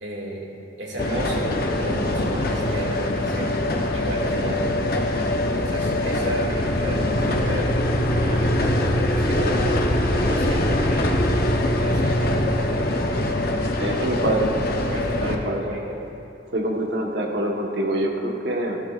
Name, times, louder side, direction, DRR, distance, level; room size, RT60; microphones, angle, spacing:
voice 1, 0.0-0.5 0.8-3.5 3.9-4.8 5.5-7.7 8.1-9.6 10.1-11.1 11.5-12.8 14.9-16.0, right 1 dB, 80° right, -3 dB, 2.1 m, -33 dB
sound 1, 1.0-15.4, left 1 dB, 50° left, 0.7 m, -23 dB
voice 2, 13.8-14.5 15.2-15.6 16.5-18.8, right 1 dB, 60° right, 0 dB, 1.2 m, -25 dB
15.0 x 11.5 x 2.4 m, 2.7 s
head